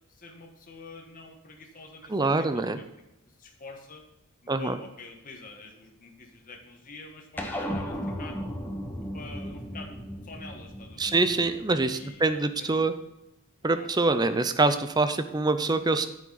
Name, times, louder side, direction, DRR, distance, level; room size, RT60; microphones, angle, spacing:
voice 1, 0.1-2.9 3.2-4.0 4.4-8.4 9.1-11.1 11.9-12.9 13.6-13.9, left 3 dB, 40° left, 2 dB, 1.3 m, -47 dB
voice 2, 2.1-2.8 4.5-4.8 11.0-12.9 13.6-16.1, right 3 dB, 20° right, 10 dB, 0.5 m, -25 dB
sound 1, 7.4-12.1, equal, 10° left, 0.9 m, -36 dB
9.4 x 7.5 x 4.0 m, 0.91 s
head